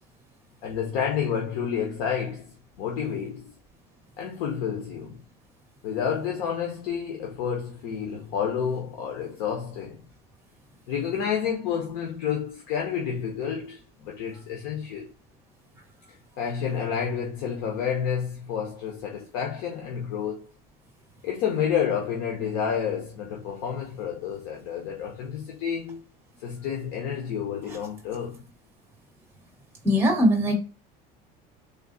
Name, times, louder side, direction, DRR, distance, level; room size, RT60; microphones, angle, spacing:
voice 1, 0.6-3.5 4.2-5.2 5.8-10.0 10.9-15.1 16.4-20.4 21.2-26.0 26.4-28.5, left 7 dB, 75° left, 0.9 m, -30 dB
voice 2, 29.8-30.5, equal, 15° right, 1.5 m, -20 dB
3.9 x 2.7 x 3.9 m
cardioid pair, 165°, 18 cm